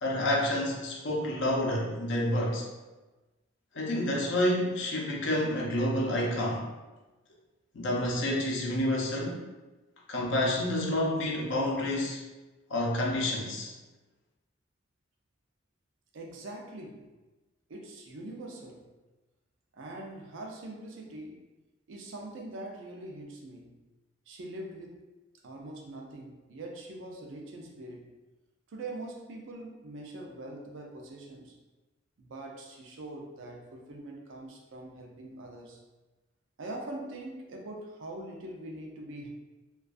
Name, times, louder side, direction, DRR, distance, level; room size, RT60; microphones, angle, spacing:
voice 1, 0.0-2.7 3.7-6.6 7.7-9.4 10.1-12.2 12.7-13.7, left 1 dB, 65° left, -2 dB, 0.5 m, -29 dB
voice 2, 16.1-17.1 17.7-18.9 19.7-21.4 21.9-23.8 24.3-25.0 25.4-28.1 28.7-31.6 32.2-35.8 36.6-39.3, right 1 dB, 70° right, 0 dB, 0.4 m, -43 dB
2.3 x 2.2 x 2.4 m, 1.1 s
head